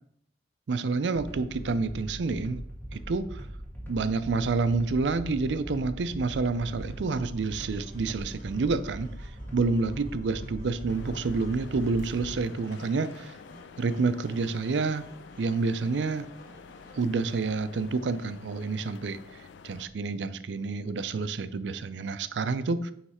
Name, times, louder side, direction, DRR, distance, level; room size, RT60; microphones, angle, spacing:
voice 1, 0.7-2.6 2.9-3.4 3.9-13.3 13.8-15.0 15.4-16.3 16.9-19.2 19.6-22.9, right 4 dB, 75° right, 13 dB, 0.5 m, -28 dB
sound 1, 1.1-12.4, equal, 10° left, 1.6 m, -41 dB
sound 2, 6.7-17.0, equal, 55° left, 1.7 m, -54 dB
sound 3, 10.9-19.9, left 6 dB, 75° left, 0.4 m, -49 dB
9.4 x 3.2 x 4.2 m, 0.71 s
head